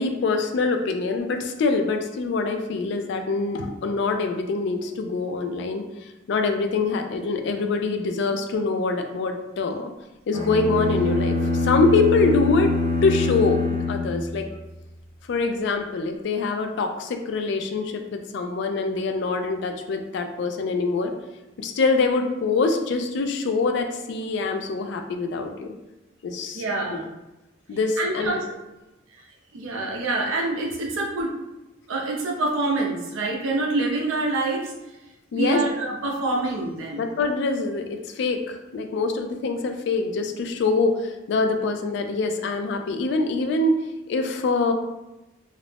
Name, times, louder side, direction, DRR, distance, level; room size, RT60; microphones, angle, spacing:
voice 1, 0.0-9.9 10.3-12.7 13.0-14.5 15.3-21.1 21.6-25.7 26.2-26.6 26.9-27.0 27.7-28.4 35.3-35.6 37.0-43.8 44.1-44.7, left 3 dB, 60° left, 5 dB, 0.3 m, -24 dB
sound 1, 10.3-14.7, left 2 dB, 85° left, 0.8 m, -24 dB
voice 2, 26.5-27.1 28.0-28.4 29.5-31.3 31.9-34.7 35.3-37.0, right 2 dB, 90° right, -1 dB, 0.6 m, -26 dB
2.5 x 2.0 x 3.2 m, 0.99 s
head